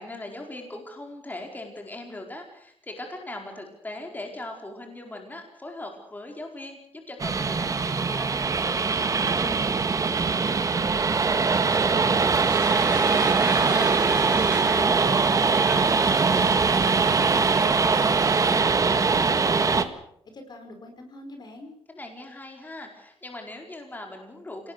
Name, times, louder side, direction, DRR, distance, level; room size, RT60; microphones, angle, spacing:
voice 1, 0.0-8.6 21.9-24.7, left 2 dB, 15° left, 3 dB, 4.6 m, -40 dB
sound 1, 7.2-19.8, right 4 dB, 35° right, 1.6 m, -22 dB
voice 2, 9.4-13.0 13.3-16.6 17.0-19.9 20.3-21.7, left 2 dB, 45° left, 5 dB, 4.8 m, -43 dB
sound 2, 12.2-18.6, right 1 dB, 10° right, 6.5 m, -36 dB
27.0 x 19.0 x 6.8 m, 0.69 s
cardioid pair, 125°, 10 cm